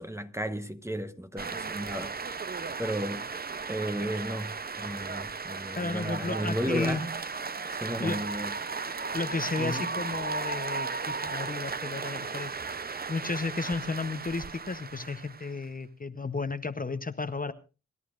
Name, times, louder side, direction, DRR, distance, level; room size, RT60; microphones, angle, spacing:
voice 1, 0.0-2.2 2.8-3.3 3.7-7.1 7.7-8.5 9.6-9.9, equal, 10° right, 1.0 m, -34 dB
sound 1, 1.4-15.6, right 4 dB, 30° right, 0.7 m, -35 dB
voice 2, 5.8-7.0 8.0-8.2 9.1-12.8 13.1-17.5, left 3 dB, 30° left, 0.8 m, -33 dB
27.0 x 11.0 x 2.5 m
cardioid pair, 55°, 30 cm